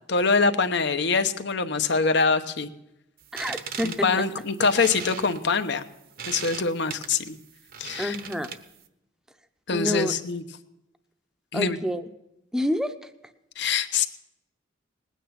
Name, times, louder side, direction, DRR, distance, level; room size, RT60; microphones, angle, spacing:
voice 1, 0.1-2.7 3.8-5.8 6.3-7.4 7.8-8.1 9.7-10.4 11.5-11.8 13.6-14.1, left 4 dB, 60° left, 10 dB, 0.9 m, -24 dB
sound 1, 3.2-8.9, right 7 dB, 50° right, 0.9 m, -39 dB
voice 2, 3.3-4.2 8.0-8.5 9.7-10.1 11.5-12.0 12.5-13.1, left 1 dB, 5° right, 9 dB, 0.7 m, -28 dB
20.0 x 9.3 x 5.8 m, 0.86 s
head